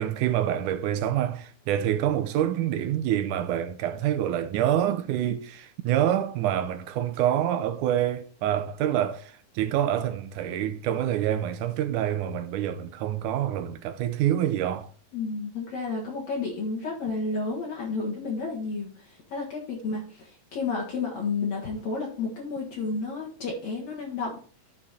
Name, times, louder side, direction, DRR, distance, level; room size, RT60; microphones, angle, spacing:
voice 1, 0.0-14.9, right 11 dB, 80° right, 2.0 m, -26 dB
voice 2, 15.1-24.4, left 4 dB, 60° left, 2.6 m, -31 dB
12.5 x 4.4 x 4.1 m
omnidirectional pair, 3.8 m